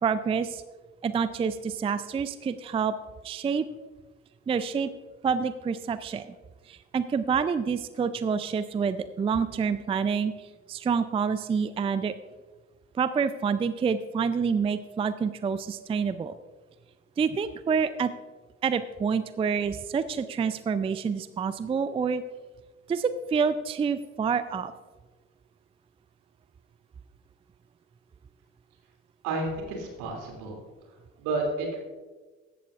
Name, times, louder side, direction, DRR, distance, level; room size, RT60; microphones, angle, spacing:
voice 1, 0.0-0.6 1.0-2.9 3.2-3.7 4.5-4.9 5.2-6.3 6.7-12.1 12.9-16.4 17.2-18.1 18.6-22.2 22.9-24.7, right 6 dB, 15° right, 13 dB, 0.4 m, -27 dB
voice 2, 29.2-30.6 31.2-31.8, right 2 dB, 65° right, 0 dB, 2.8 m, -31 dB
15.5 x 11.5 x 2.5 m, 1.3 s
figure-of-eight pair, 55°, 37 cm